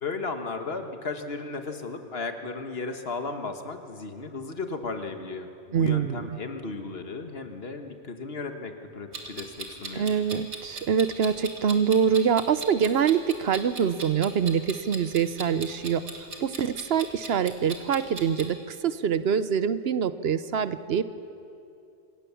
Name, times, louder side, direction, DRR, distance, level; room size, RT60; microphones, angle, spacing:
voice 1, 0.0-10.1, left 3 dB, 65° left, 6 dB, 1.6 m, -35 dB
voice 2, 5.7-6.3 9.9-21.1, right 7 dB, 70° right, 13 dB, 0.9 m, -25 dB
Clock, 9.1-18.4, right 3 dB, 85° right, 2.2 m, -39 dB
26.0 x 17.0 x 7.0 m, 2.7 s
omnidirectional pair, 1.1 m